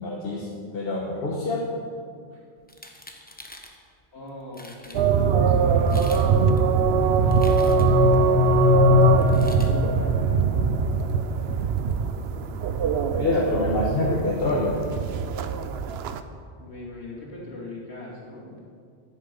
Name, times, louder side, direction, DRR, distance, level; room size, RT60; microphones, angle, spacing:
voice 1, 0.0-1.7 13.2-14.8, left 2 dB, 60° left, -3 dB, 1.5 m, -26 dB
sound 1, 2.6-3.8 4.3-4.4 4.5-5.0 5.8-6.3 6.6-8.1 9.2-9.7, left 1 dB, 10° left, 1.0 m, -45 dB
voice 2, 4.1-6.1 6.4-6.7 7.0-8.4 9.7-10.4 12.7-13.8 16.6-18.6, left 2 dB, 80° left, -5 dB, 2.9 m, -41 dB
sound 2, 4.9-16.2, right 6 dB, 75° right, 0.9 m, -22 dB
sound 3, 6.9-10.8, left 8 dB, 40° left, 1.1 m, -23 dB
12.0 x 10.0 x 5.3 m, 2.2 s
omnidirectional pair, 1.1 m